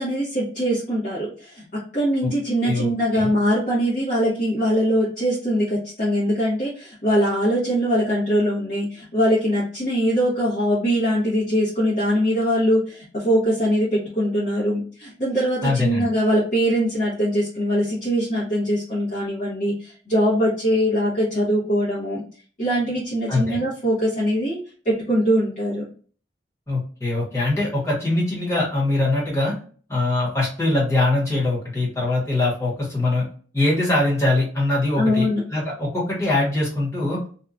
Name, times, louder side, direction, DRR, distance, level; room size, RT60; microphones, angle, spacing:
voice 1, 0.0-22.2 22.6-24.6 24.8-25.8 35.0-35.4, equal, 45° left, -8 dB, 0.9 m, -22 dB
voice 2, 2.6-3.3 15.6-16.0 23.3-23.6 26.7-29.5 29.9-33.2 33.5-37.2, left 2 dB, 15° left, -5 dB, 1.1 m, -22 dB
2.7 x 2.3 x 2.4 m, 0.42 s
head